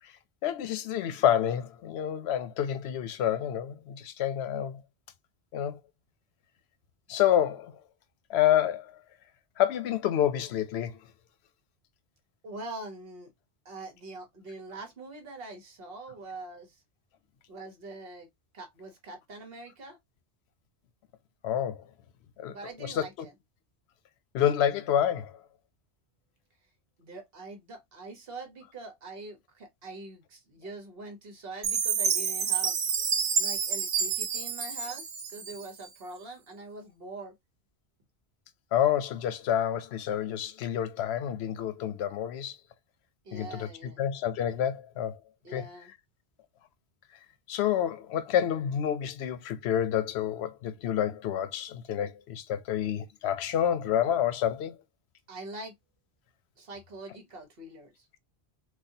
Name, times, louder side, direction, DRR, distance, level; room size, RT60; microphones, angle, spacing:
voice 1, 0.4-4.8 5.5-5.8 7.1-7.7 8.3-8.9 9.6-10.9 21.4-21.8 22.4-22.5 22.8-23.1 24.3-25.3 38.7-42.6 43.3-45.2 45.5-45.7 47.5-54.8, left 10 dB, 75° left, 0.8 m, -28 dB
voice 2, 12.4-13.3 13.6-16.7 17.5-18.3 18.5-20.0 22.5-23.3 27.0-32.8 33.4-37.3 43.2-44.0 45.4-45.9 55.3-55.7 56.6-58.1, right 2 dB, 60° right, 1.1 m, -43 dB
Chime, 31.6-35.9, right 6 dB, 85° right, 1.0 m, -29 dB
4.1 x 2.3 x 2.6 m
omnidirectional pair, 1.1 m